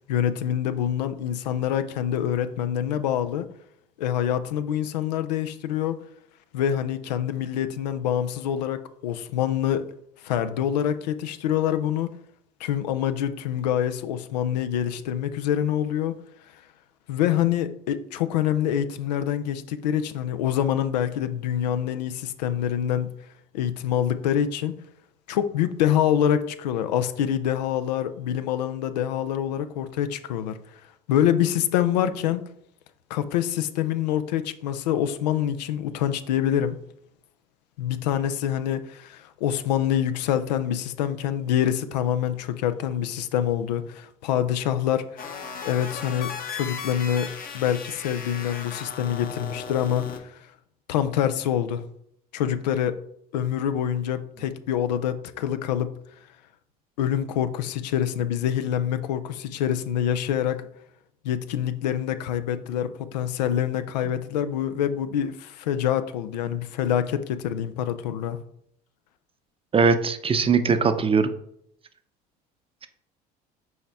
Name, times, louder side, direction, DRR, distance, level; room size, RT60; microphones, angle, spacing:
voice 1, 0.1-3.5 4.0-6.0 6.5-9.9 10.2-12.1 12.6-16.2 17.1-23.1 23.5-24.8 25.3-30.8 31.1-32.5 33.1-36.8 37.8-45.4 45.6-50.5 50.9-51.8 52.3-53.0 53.3-55.9 57.0-60.7 61.2-68.4, left 10 dB, 85° left, 0.5 m, -26 dB
sound 1, 45.2-50.2, left 6 dB, 45° left, 0.9 m, -36 dB
voice 2, 69.7-71.3, right 5 dB, 25° right, 0.6 m, -20 dB
6.3 x 4.3 x 3.5 m
hypercardioid pair, 75°, 21 cm